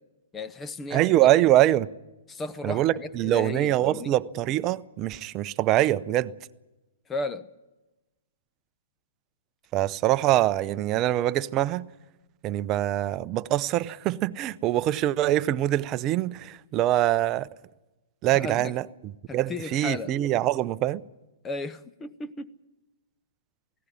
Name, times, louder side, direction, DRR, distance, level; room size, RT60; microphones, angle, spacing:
voice 1, 0.3-1.1 2.3-4.1 7.1-7.5 18.3-18.7 19.3-20.1 21.4-22.5, left 3 dB, 15° left, 0.8 m, -35 dB
voice 2, 0.9-1.9 2.6-6.3 9.7-11.8 12.4-17.5 18.2-18.8 19.3-21.0, right 14 dB, 30° right, 0.6 m, -24 dB
18.5 x 16.5 x 9.7 m
hypercardioid pair, 125°, 0 cm